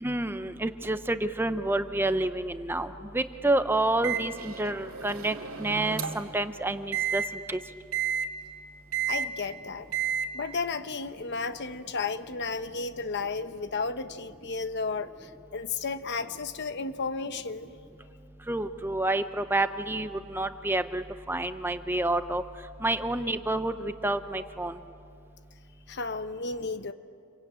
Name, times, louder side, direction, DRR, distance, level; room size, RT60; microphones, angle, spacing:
voice 1, 0.0-7.2 7.5-7.6 18.5-22.4 22.8-24.7, right 2 dB, 10° right, 10 dB, 0.6 m, -29 dB
Microwave oven, 4.0-6.4 6.9-7.2 7.9-8.3 8.9-9.3 9.9-10.3, right 8 dB, 65° right, 2.4 m, -31 dB
voice 2, 9.1-9.9 10.3-17.7 25.9-26.9, left 4 dB, 50° left, 10 dB, 0.9 m, -33 dB
28.0 x 23.0 x 8.9 m, 2.5 s
head